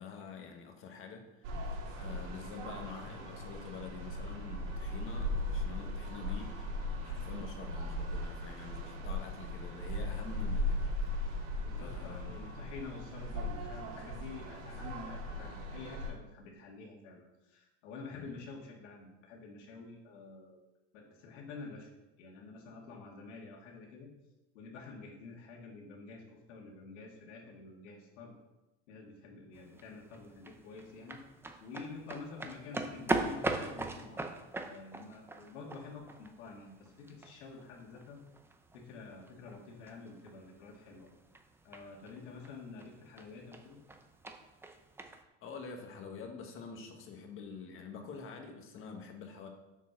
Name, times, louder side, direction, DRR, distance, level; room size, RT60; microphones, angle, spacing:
voice 1, 0.0-6.7 7.0-10.9 11.8-12.4 18.1-18.3 45.4-49.5, left 5 dB, 35° left, 3 dB, 1.6 m, -47 dB
sound 1, 1.4-16.1, left 1 dB, 70° right, 3.3 m, -38 dB
voice 2, 11.6-20.6 20.9-21.9 22.2-24.1 24.5-26.2 26.5-28.3 28.9-31.2 31.6-38.2 38.7-41.1 41.6-43.8, left 4 dB, 90° left, -1 dB, 2.4 m, -48 dB
sound 2, 29.5-45.2, right 2 dB, 5° right, 0.6 m, -42 dB
7.4 x 6.7 x 6.1 m, 1.0 s
supercardioid pair, 150°, 35 cm